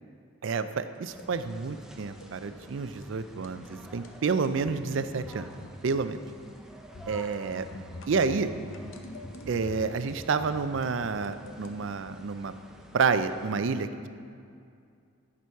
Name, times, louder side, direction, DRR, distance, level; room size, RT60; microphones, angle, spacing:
voice 1, 0.4-5.5 5.8-6.2 7.1-7.7 8.1-8.5 9.5-12.5 12.9-13.9, right 5 dB, 65° right, 11 dB, 0.4 m, -29 dB
sound 1, 1.0-1.3 2.0-2.3 2.6-2.8 3.0-3.1 3.4-4.8 5.2-5.8 6.1-6.4 6.9-10.0 10.4-11.7, left 1 dB, 70° left, 0.7 m, -45 dB
sound 2, 1.1-13.5, equal, 5° right, 0.6 m, -50 dB
11.0 x 6.2 x 4.5 m, 2.4 s
head